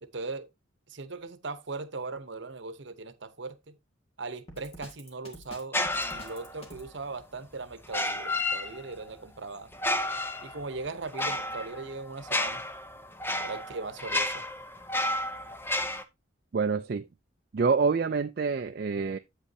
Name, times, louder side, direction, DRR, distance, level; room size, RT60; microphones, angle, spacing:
voice 1, 0.0-0.5 0.9-3.8 4.2-9.7 10.4-12.6 13.4-14.5, right 3 dB, 65° right, 0.9 m, -39 dB
Drum kit, 4.5-6.9, equal, 30° left, 1.8 m, -47 dB
sound 1, 5.7-6.7 7.8-9.1 9.7-16.0, left 1 dB, 10° left, 0.6 m, -31 dB
voice 2, 16.5-17.1 17.5-19.2, right 5 dB, 50° right, 0.4 m, -26 dB
8.4 x 8.3 x 2.7 m
head